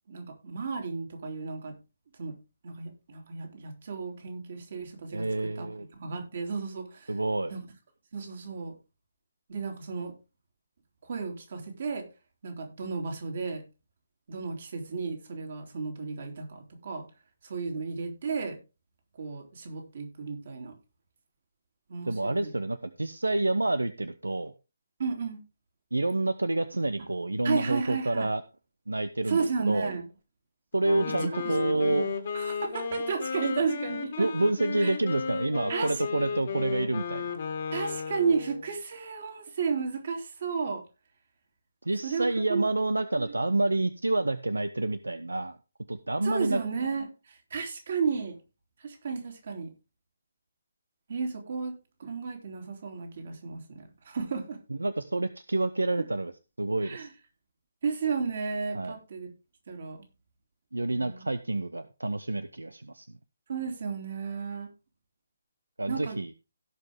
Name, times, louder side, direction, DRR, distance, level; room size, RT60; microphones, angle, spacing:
voice 1, 0.1-1.7 2.2-2.3 2.6-7.1 7.5-7.6 8.1-8.7 9.5-10.1 11.0-12.1 12.4-13.6 14.3-17.1 17.4-18.6 19.2-20.7 21.9-22.5 25.0-25.4 27.4-28.3 29.3-30.1 31.1-31.4 31.7-32.1 32.3-34.3 34.8-34.9 35.7-36.0 37.7-40.8 42.0-42.6 43.1-43.3 46.2-48.4 48.8-49.7 51.1-51.7 52.0-54.6 56.8-57.1 57.8-59.3 59.7-60.0 60.9-61.2 63.5-64.7 65.9-66.2, right 5 dB, 50° right, 3.1 m, -33 dB
voice 2, 5.1-5.9 7.1-7.5 22.1-24.5 25.9-28.4 28.9-29.9 30.7-32.1 34.2-37.4 41.8-45.6 45.9-46.6 54.7-56.3 56.6-57.1 58.7-58.9 60.7-63.1 65.8-66.3, right 2 dB, 75° right, 0.7 m, -28 dB
Wind instrument woodwind instrument, 30.8-38.7, left 6 dB, 45° left, 2.0 m, -34 dB
17.0 x 5.6 x 3.6 m
figure-of-eight pair, 140°, 0 cm